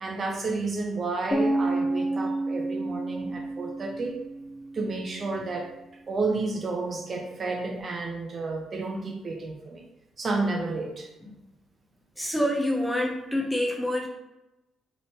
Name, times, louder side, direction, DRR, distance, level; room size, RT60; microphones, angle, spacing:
voice 1, 0.0-4.2 4.7-5.7 6.1-9.9 10.2-11.1, right 3 dB, 45° right, 2 dB, 0.4 m, -31 dB
sound 1, 1.3-5.2, right 2 dB, 30° left, 1.1 m, -29 dB
voice 2, 12.2-14.1, left 1 dB, 5° left, 0 dB, 0.6 m, -27 dB
2.8 x 2.0 x 2.8 m, 0.99 s
supercardioid pair, 60°, 0 cm